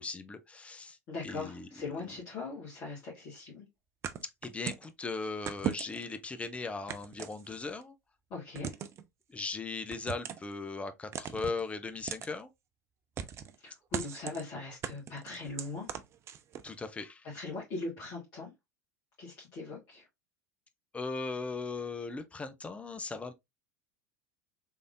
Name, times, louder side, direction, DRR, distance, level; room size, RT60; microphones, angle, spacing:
voice 1, 0.0-1.0 1.2-1.7 4.4-7.9 9.3-12.5 16.6-17.3 20.9-23.3, left 3 dB, 15° left, 0.6 m, -38 dB
voice 2, 1.1-3.6 8.3-8.7 13.6-15.9 17.2-18.5 19.2-20.0, left 3 dB, 40° left, 1.8 m, -40 dB
sound 1, 4.0-4.9 5.5-6.2 6.9-7.8 8.5-9.0 9.9-10.5 11.1-11.6 12.1-12.3 13.2-13.6 13.9-14.4 14.8-16.7, right 8 dB, 30° right, 0.4 m, -38 dB
3.7 x 3.3 x 2.5 m
figure-of-eight pair, 80°, 9 cm